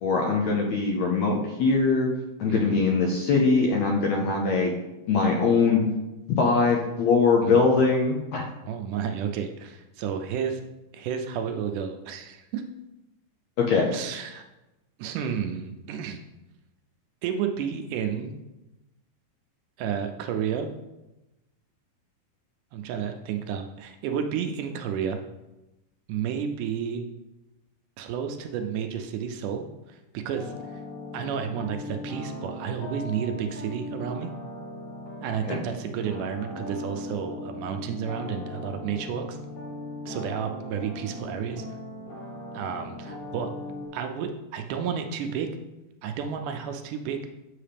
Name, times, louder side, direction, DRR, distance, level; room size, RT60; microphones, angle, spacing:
voice 1, 0.0-2.1 2.4-4.7 5.1-5.8 6.4-8.4 13.6-13.9 35.5-35.6, left 4 dB, 75° left, 0 dB, 1.7 m, -22 dB
voice 2, 2.5-2.8 7.4-7.7 8.7-10.6 10.9-12.6 13.9-14.4 15.0-16.2 17.2-18.3 19.8-20.7 22.7-25.2 26.1-27.0 28.0-30.8 31.1-34.3 35.2-39.4 40.1-41.7 42.5-43.5 43.9-45.5 46.0-47.3, right 7 dB, 80° right, 6 dB, 2.0 m, -31 dB
sound 1, 30.3-43.9, left 1 dB, 50° left, 1.6 m, -38 dB
7.6 x 5.6 x 3.4 m, 0.99 s
omnidirectional pair, 3.8 m